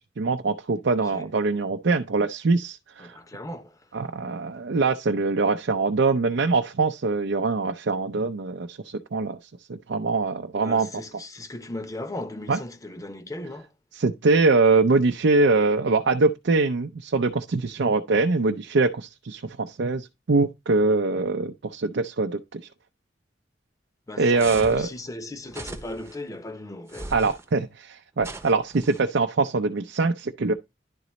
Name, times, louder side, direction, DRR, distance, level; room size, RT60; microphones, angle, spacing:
voice 1, 0.2-3.2 3.9-9.4 9.7-10.9 12.5-12.6 13.9-22.6 24.2-24.9 27.1-30.5, right 3 dB, 85° right, 0.5 m, -23 dB
voice 2, 3.0-3.8 10.6-13.7 24.1-27.1, left 1 dB, 20° left, 0.8 m, -37 dB
sound 1, 24.4-24.9 25.5-26.1 26.9-27.4 28.2-29.0, right 2 dB, 15° right, 0.7 m, -39 dB
11.0 x 3.9 x 3.1 m
head